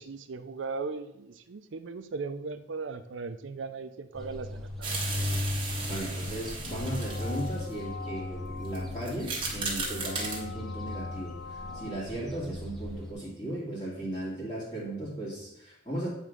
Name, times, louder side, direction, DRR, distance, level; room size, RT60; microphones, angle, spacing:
voice 1, 0.0-5.1, right 4 dB, 80° right, 10 dB, 0.5 m, -38 dB
sound 1, 4.1-13.1, left 2 dB, ahead, 0.8 m, -37 dB
sound 2, 4.8-7.7 8.6-8.8 9.0-10.4, right 3 dB, 25° right, 1.5 m, -35 dB
voice 2, 5.9-16.1, right 1 dB, 25° left, -7 dB, 2.2 m, -36 dB
sound 3, 6.6-12.1, left 5 dB, 75° left, 0.4 m, -44 dB
8.6 x 3.6 x 5.1 m, 0.84 s
head